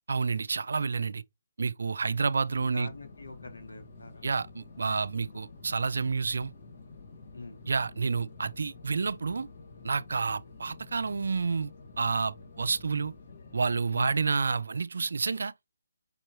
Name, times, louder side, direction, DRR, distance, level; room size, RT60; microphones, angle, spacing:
voice 1, 0.1-1.2 1.6-2.9 4.2-6.5 7.7-9.5 9.8-11.7 12.0-13.1 13.5-15.5, right 4 dB, 70° right, 0.4 m, -29 dB
sound 1, 2.5-13.8, left 4 dB, 50° left, 1.8 m, -50 dB
voice 2, 2.6-4.3 7.3-7.6 13.9-14.2, left 2 dB, 85° left, 1.2 m, -43 dB
5.4 x 3.0 x 3.0 m
figure-of-eight pair, 155°, 0 cm